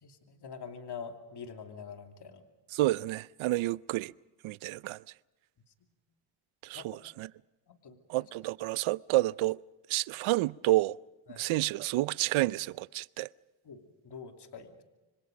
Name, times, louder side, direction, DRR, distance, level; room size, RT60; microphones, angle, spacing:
voice 1, 0.0-2.4 6.7-6.8 7.7-8.0 11.3-11.4 13.6-14.8, left 6 dB, 55° left, 2.9 m, -45 dB
voice 2, 2.7-4.1 4.4-5.0 6.6-7.3 8.1-9.6 9.9-11.0 11.3-13.3, right 18 dB, 75° right, 0.6 m, -29 dB
26.5 x 25.0 x 5.2 m
supercardioid pair, 60°, 48 cm